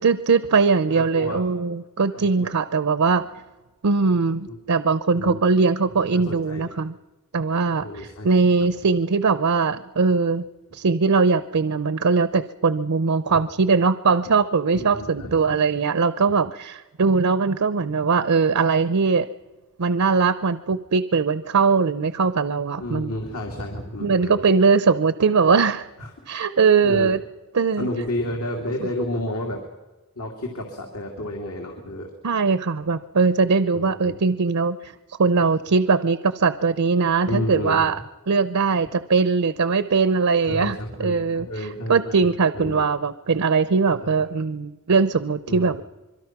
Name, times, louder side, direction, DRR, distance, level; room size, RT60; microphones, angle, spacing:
voice 1, 0.0-3.3 3.8-6.9 7.3-10.5 10.7-19.3 19.8-23.1 24.0-25.9 26.3-27.2 27.5-27.9 32.2-34.9 35.2-38.0 38.3-45.8, right 4 dB, 80° right, 14 dB, 0.7 m, -20 dB
voice 2, 0.9-1.5 2.1-2.5 4.5-4.6 5.1-5.4 6.1-6.7 7.8-8.3 13.3-13.4 14.7-15.6 22.8-24.5 26.0-26.1 26.8-27.1 27.8-29.6 30.2-32.1 33.7-34.1 37.3-37.8 40.5-42.8 44.0-44.1 45.5-45.7, left 1 dB, 85° left, 1 dB, 2.7 m, -31 dB
25.5 x 23.0 x 6.0 m, 1.1 s
head